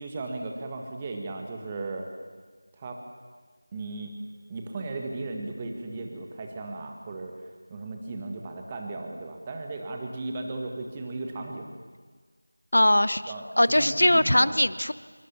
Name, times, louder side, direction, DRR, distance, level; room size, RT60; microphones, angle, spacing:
voice 1, 0.0-2.1 2.7-3.0 3.7-4.2 4.5-11.7 13.3-13.4 13.8-14.5, right 2 dB, 15° right, 2 dB, 1.6 m, -36 dB
voice 2, 12.7-13.2 13.6-14.9, left 1 dB, 65° left, 15 dB, 1.1 m, -20 dB
25.5 x 24.0 x 7.2 m, 1.4 s
figure-of-eight pair, 170°, 0 cm